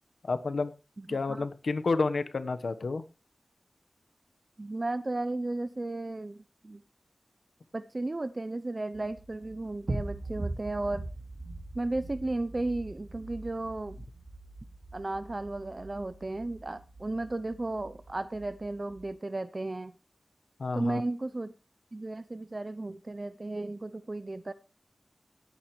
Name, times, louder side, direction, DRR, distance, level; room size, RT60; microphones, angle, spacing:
voice 1, 0.2-0.7 1.1-3.0 20.6-21.0, left 3 dB, 90° left, 11 dB, 1.3 m, -30 dB
voice 2, 1.0-1.5 4.6-6.8 7.7-11.1 11.7-14.0 14.9-19.9 20.7-21.5 21.9-24.5, right 2 dB, 40° right, 14 dB, 0.7 m, -34 dB
sound 1, 8.9-19.1, right 2 dB, 60° right, 3.2 m, -42 dB
17.5 x 9.6 x 3.2 m, 0.29 s
wide cardioid pair, 60°, 0 cm